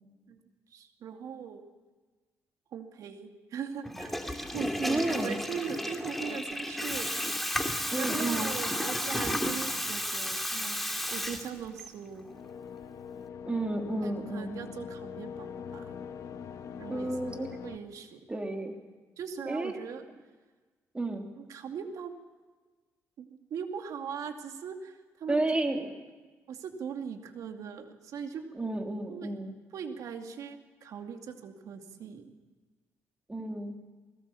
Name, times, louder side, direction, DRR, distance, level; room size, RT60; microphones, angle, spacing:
voice 1, 0.7-1.7 2.7-7.1 8.0-10.8 11.1-12.3 14.0-16.0 16.8-18.2 19.2-20.1 21.4-22.2 23.2-25.4 26.5-28.4 29.1-29.3 29.7-32.2, right 7 dB, 70° right, 5 dB, 2.5 m, -40 dB
Water tap faucet / Toilet flush, 3.8-11.9, left 1 dB, ahead, 2.5 m, -32 dB
voice 2, 4.8-5.4 7.9-8.5 13.4-14.6 16.9-17.5 18.3-18.7 19.4-19.7 20.9-21.3 25.3-25.9 28.5-29.5 33.3-33.7, right 2 dB, 20° right, 3 dB, 3.2 m, -31 dB
sound 1, 12.0-17.8, left 7 dB, 65° left, 1.4 m, -43 dB
21.0 x 19.0 x 7.1 m, 1.3 s
cardioid pair, 80°, 6 cm